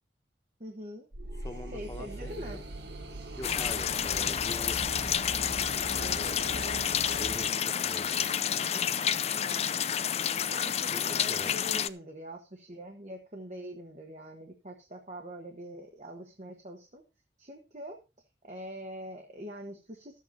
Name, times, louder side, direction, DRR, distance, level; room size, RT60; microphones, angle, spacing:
voice 1, 0.6-1.1 1.7-2.6 5.9-6.8 8.5-9.0 9.4-9.9 10.5-17.0 17.4-18.0 18.4-20.2, equal, 40° right, 2 dB, 1.5 m, -44 dB
sound 1, 1.1-7.5, right 2 dB, 70° right, 1.7 m, -41 dB
voice 2, 1.4-2.6 3.4-5.0 7.1-8.2 10.9-11.6, left 1 dB, 20° left, 5 dB, 1.6 m, -43 dB
sound 2, 3.4-11.9, left 9 dB, 35° left, 0.5 m, -30 dB
13.5 x 8.3 x 4.1 m, 0.29 s
head